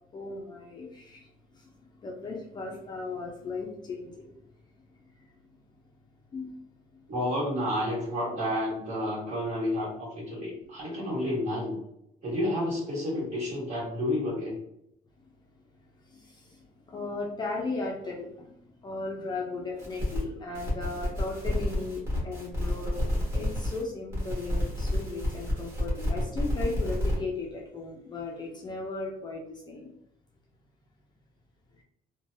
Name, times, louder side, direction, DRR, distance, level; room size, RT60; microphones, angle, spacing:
voice 1, 0.1-1.3 1.5-1.7 2.0-4.4 6.3-6.6 6.9-7.0 15.2-15.3 16.1-16.6 16.9-23.0 23.3-29.9, left 3 dB, 25° left, -1 dB, 0.4 m, -36 dB
voice 2, 7.1-11.8 12.2-14.6, left 1 dB, 45° right, -5 dB, 1.5 m, -30 dB
sound 1, 19.8-20.2 20.5-23.8 24.1-27.1, left 1 dB, 15° right, 1.4 m, -30 dB
3.1 x 2.2 x 2.6 m, 0.77 s
cardioid pair, 160°, 16 cm